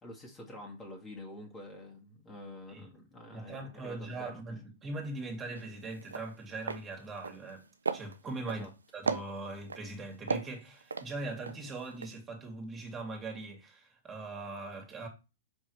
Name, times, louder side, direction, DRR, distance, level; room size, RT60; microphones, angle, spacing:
voice 1, 0.0-4.3 8.4-8.7, left 1 dB, 20° left, 1.9 m, -47 dB
voice 2, 2.7-3.0 3.3-7.6 7.9-8.7 8.9-15.1, right 2 dB, 20° right, 2.3 m, -41 dB
sound 1, 5.5-5.7 6.0-6.3 6.6-6.8 7.2-7.6 7.8-8.7 9.1-9.8 10.3-11.6 11.9-12.1, right 4 dB, 85° right, 0.5 m, -35 dB
5.7 x 5.4 x 3.2 m
figure-of-eight pair, 110°, 0 cm